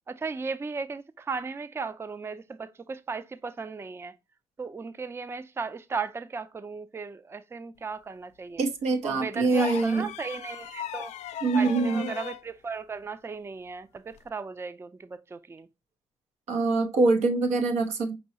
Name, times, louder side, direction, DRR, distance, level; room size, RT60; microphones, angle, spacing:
voice 1, 0.1-4.2 4.6-8.7 9.0-11.1 11.5-15.7, right 4 dB, 20° right, 0.4 m, -36 dB
voice 2, 8.6-10.1 11.4-12.1 16.5-18.2, right 3 dB, 90° right, 1.0 m, -24 dB
sound 1, 9.5-12.5 14.1-14.3, left 11 dB, 85° left, 0.4 m, -37 dB
5.4 x 3.0 x 2.7 m
cardioid pair, 75°, 11 cm